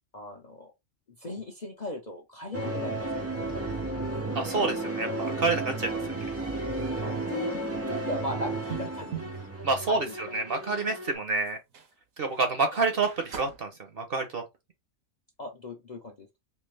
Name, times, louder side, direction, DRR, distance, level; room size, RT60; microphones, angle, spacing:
voice 1, 0.1-0.7 1.2-3.7 7.0-9.1 9.9-10.1 15.4-16.3, left 1 dB, 40° left, 0.6 m, -38 dB
sound 1, 2.5-11.1, right 2 dB, 25° right, 0.3 m, -33 dB
voice 2, 4.3-5.9 9.6-11.6 12.2-13.7 14.0-14.4, right 3 dB, 50° right, 0.9 m, -28 dB
sound 2, 7.5-9.4 10.8-10.9 11.4-11.9 12.3-12.5 12.8-13.6, right 8 dB, 70° right, 1.2 m, -42 dB
3.2 x 2.9 x 3.3 m
omnidirectional pair, 1.5 m